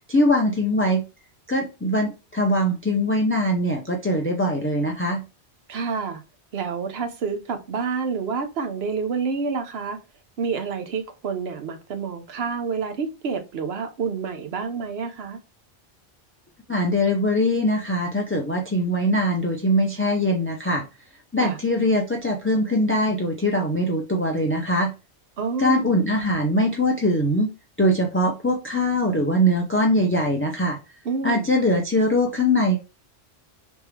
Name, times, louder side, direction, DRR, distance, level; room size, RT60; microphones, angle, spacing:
voice 1, 0.1-1.0 1.5-5.2 16.7-20.8 21.3-24.9 25.6-27.5 27.8-30.8 31.2-32.8, equal, 20° left, 0.3 m, -22 dB
voice 2, 5.7-6.2 6.5-10.0 10.4-15.4 21.4-21.6 25.4-25.9 31.0-31.5, right 5 dB, 65° right, 1.0 m, -28 dB
3.5 x 3.1 x 3.2 m
omnidirectional pair, 1.2 m